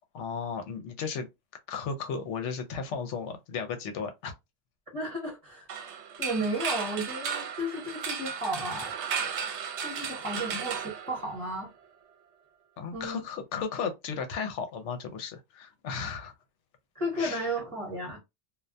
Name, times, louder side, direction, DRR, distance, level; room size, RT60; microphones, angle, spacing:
voice 1, 0.1-1.3 1.7-4.3 12.8-16.3 17.2-17.5, left 6 dB, 80° left, 0.9 m, -35 dB
voice 2, 4.9-5.7 6.2-8.9 9.8-11.7 12.9-13.2 17.0-18.2, right 1 dB, 30° right, 1.0 m, -33 dB
sound 1, 5.7-11.7, right 7 dB, 70° right, 0.9 m, -35 dB
2.3 x 2.1 x 2.5 m
omnidirectional pair, 1.2 m